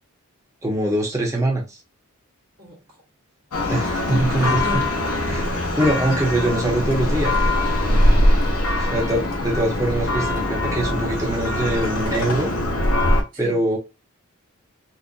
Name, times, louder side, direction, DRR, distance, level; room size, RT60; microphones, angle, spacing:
voice 1, 0.6-1.8 3.7-4.8 5.3-5.5 5.8-7.3 8.9-12.5 13.4-13.8, right 1 dB, 15° right, 1.1 m, -23 dB
voice 2, 2.6-3.0 3.9-4.9 8.3-8.9 10.0-10.2 13.3-13.6, right 1 dB, 45° right, 1.3 m, -36 dB
Church bell, 3.5-13.2, left 1 dB, 70° left, 1.0 m, -22 dB
4.2 x 2.5 x 2.6 m
head